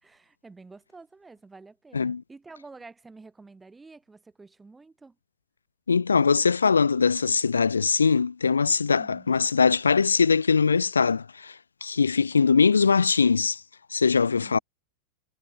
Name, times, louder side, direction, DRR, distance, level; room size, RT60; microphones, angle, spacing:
voice 1, 0.0-5.2 8.9-9.3 14.3-14.6, right 3 dB, 10° right, 4.2 m, -49 dB
voice 2, 5.9-11.5 11.8-13.6 13.9-14.6, left 5 dB, 75° left, 0.4 m, -21 dB
figure-of-eight pair, 90°, 0 cm